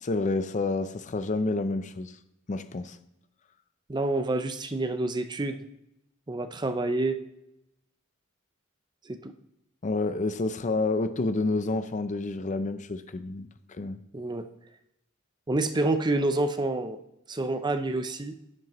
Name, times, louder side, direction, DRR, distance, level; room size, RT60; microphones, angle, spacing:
voice 1, 0.0-2.1 2.5-3.0 9.8-14.0, left 3 dB, 35° left, 11 dB, 0.5 m, -29 dB
voice 2, 3.9-5.6 6.3-7.2 9.1-9.3 14.1-14.5 15.5-17.0 17.3-18.3, right 2 dB, 20° right, 9 dB, 0.6 m, -28 dB
10.5 x 10.5 x 3.0 m, 0.84 s
head